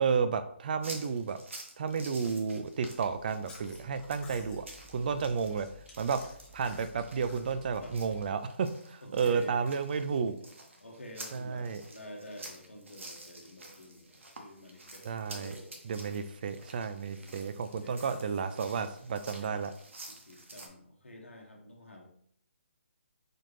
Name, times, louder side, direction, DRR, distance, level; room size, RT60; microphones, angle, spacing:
voice 1, 0.0-1.4 1.8-5.7 6.0-6.2 6.5-10.4 11.3-11.8 15.0-15.6 15.8-19.7, right 6 dB, 45° right, 10 dB, 0.3 m, -32 dB
sound 1, 0.8-20.7, right 2 dB, 75° right, 0.9 m, -50 dB
Chewing mastication, 3.0-8.3, left 2 dB, 10° left, 0.5 m, -54 dB
voice 2, 9.0-9.6 10.8-16.2 17.2-17.4 17.8-18.2 18.8-19.0 20.1-22.0, left 1 dB, 80° left, 1 dB, 1.0 m, -49 dB
4.2 x 2.4 x 3.2 m, 0.65 s
figure-of-eight pair, 140°, 7 cm